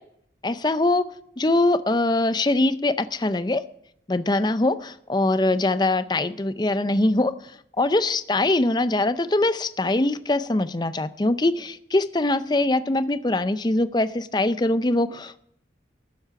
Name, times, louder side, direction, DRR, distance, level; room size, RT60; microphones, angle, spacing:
voice 1, 0.4-1.1 1.4-3.6 4.1-15.5, left 2 dB, 25° left, 13 dB, 0.5 m, -23 dB
12.5 x 10.5 x 5.9 m, 0.70 s
head